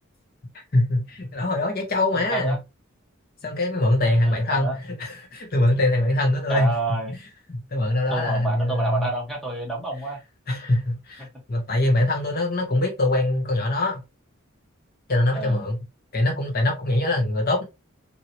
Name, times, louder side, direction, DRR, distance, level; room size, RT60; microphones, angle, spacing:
voice 1, 0.7-2.6 3.4-6.7 7.5-9.1 10.5-14.0 15.1-15.8 16.1-17.6, left 1 dB, 45° left, 1.0 m, -23 dB
voice 2, 2.1-2.6 4.3-4.8 6.5-7.2 8.1-10.2 11.2-11.3 15.3-15.7, right 2 dB, ahead, 1.0 m, -29 dB
2.9 x 2.7 x 2.7 m
head